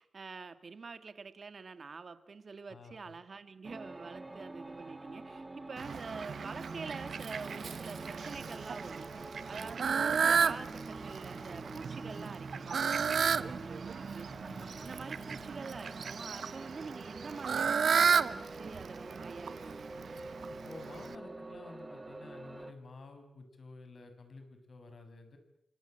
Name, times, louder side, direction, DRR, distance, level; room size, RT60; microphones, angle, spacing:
voice 1, 0.0-20.0, right 4 dB, 45° right, 10 dB, 2.1 m, -46 dB
voice 2, 2.7-3.1 13.2-13.7 14.4-14.9 20.5-25.4, left 3 dB, 50° left, 7 dB, 6.4 m, -51 dB
sound 1, 3.6-22.7, right 2 dB, 20° right, 2.2 m, -47 dB
Fowl, 5.8-21.1, right 6 dB, 65° right, 1.1 m, -34 dB
29.5 x 24.5 x 7.9 m, 0.79 s
wide cardioid pair, 120°, 0 cm